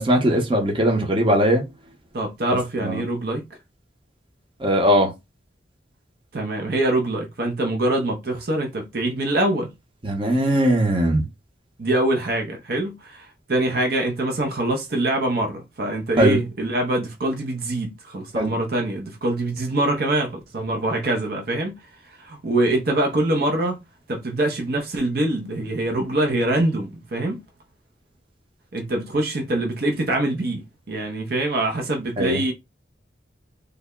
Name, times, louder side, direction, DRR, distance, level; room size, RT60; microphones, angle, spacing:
voice 1, 0.0-1.6 2.8-3.0 4.6-5.1 10.0-11.3 16.2-16.4 18.4-18.5 32.2-32.4, equal, 30° right, 0.9 m, -19 dB
voice 2, 2.1-3.5 6.3-9.7 11.8-21.8 22.0-23.8 24.1-27.4 28.7-32.5, right 1 dB, 55° right, 0.7 m, -24 dB
3.4 x 2.1 x 3.6 m
head